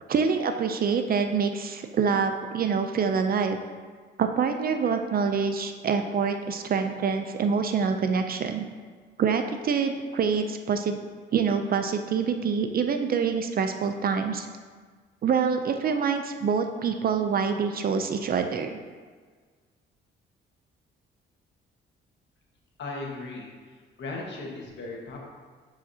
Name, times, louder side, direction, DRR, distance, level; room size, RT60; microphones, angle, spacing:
voice 1, 0.1-3.6 4.2-8.7 9.2-11.0 11.3-14.5 15.2-18.8, right 6 dB, 50° right, 7 dB, 0.5 m, -26 dB
voice 2, 22.8-23.5 24.0-25.2, left 3 dB, 65° left, -1 dB, 1.6 m, -36 dB
9.6 x 4.9 x 2.8 m, 1.5 s
cardioid pair, 90°, 20 cm